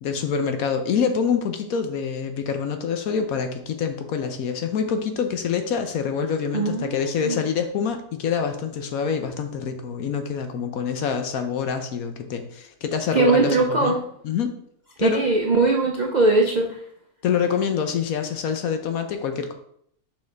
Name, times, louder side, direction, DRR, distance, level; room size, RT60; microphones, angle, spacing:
voice 1, 0.0-14.0 14.2-14.5 15.0-15.3 17.2-19.5, left 6 dB, 65° left, 7 dB, 1.0 m, -26 dB
voice 2, 6.5-7.4 13.1-14.0 15.0-16.8, right 3 dB, 60° right, 0 dB, 0.4 m, -20 dB
6.0 x 5.6 x 3.3 m, 0.68 s
omnidirectional pair, 1.8 m